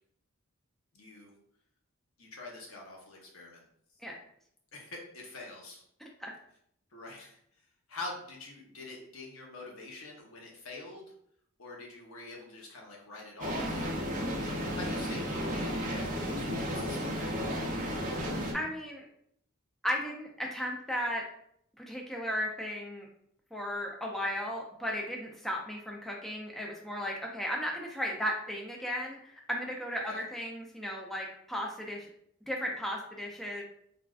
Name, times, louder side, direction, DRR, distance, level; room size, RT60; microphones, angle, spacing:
voice 1, 0.9-1.3 2.2-3.6 4.7-5.8 6.9-7.4 7.9-11.1 11.6-17.9 30.1-30.2, left 2 dB, 70° left, -1 dB, 0.8 m, -45 dB
sound 1, 13.4-18.5, equal, 40° right, 0.6 m, -33 dB
voice 2, 18.5-19.0 19.8-21.2 21.8-23.1 23.5-32.1 32.5-33.6, equal, ahead, -1 dB, 0.3 m, -35 dB
3.4 x 2.4 x 2.3 m, 0.69 s
head